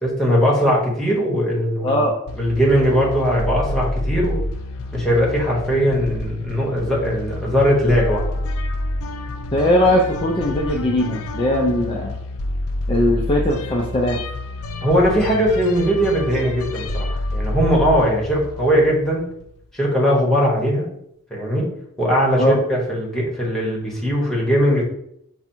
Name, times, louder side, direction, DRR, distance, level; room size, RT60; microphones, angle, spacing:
voice 1, 0.0-2.0 2.3-4.4 4.9-8.3 14.8-19.3 19.7-20.9 21.3-21.7 22.0-24.8, equal, ahead, -4 dB, 1.2 m, -19 dB
voice 2, 1.8-2.1 9.5-12.1 12.9-14.2 22.4-22.6, left 1 dB, 25° left, -1 dB, 0.5 m, -19 dB
sound 1, 2.3-19.6, left 1 dB, 80° left, 0.5 m, -28 dB
5.1 x 2.3 x 4.4 m, 0.73 s
head